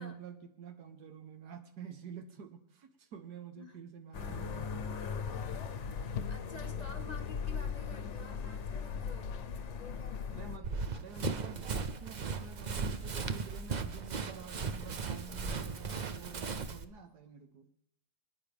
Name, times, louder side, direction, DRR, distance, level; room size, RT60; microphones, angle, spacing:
voice 1, 0.0-5.0 10.3-17.7, right 6 dB, 80° right, 7 dB, 1.6 m, -49 dB
sound 1, 4.1-10.6, left 6 dB, 55° left, 1.0 m, -38 dB
sound 2, 5.8-7.1 7.9-8.3 8.5-8.8 9.2-9.6 10.4-11.9 13.6-13.7 14.1-14.2 15.4-15.8 16.1-16.2 16.5-16.7, left 9 dB, 75° left, 1.1 m, -48 dB
voice 2, 6.0-10.8, left 3 dB, 35° left, 5 dB, 0.7 m, -51 dB
Run, 10.6-16.8, right 5 dB, 65° right, 0.4 m, -37 dB
25.0 x 9.8 x 3.5 m, 0.75 s
omnidirectional pair, 1.7 m